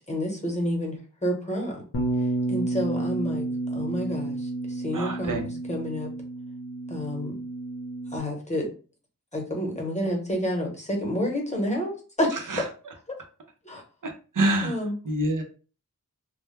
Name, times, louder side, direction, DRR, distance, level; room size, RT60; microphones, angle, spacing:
voice 1, 0.1-1.8 2.5-3.5 3.7-6.1 6.9-7.4 8.1-8.7 9.3-12.4 13.6-13.8 14.6-14.9, equal, 20° left, 0 dB, 0.9 m, -29 dB
Bass guitar, 1.9-8.2, right 2 dB, 50° left, 0.6 m, -31 dB
voice 2, 4.9-5.5 12.5-12.6 14.0-14.8 15.0-15.4, right 1 dB, 70° right, 3 dB, 0.6 m, -26 dB
2.1 x 2.1 x 3.1 m, 0.37 s
wide cardioid pair, 45°, 32 cm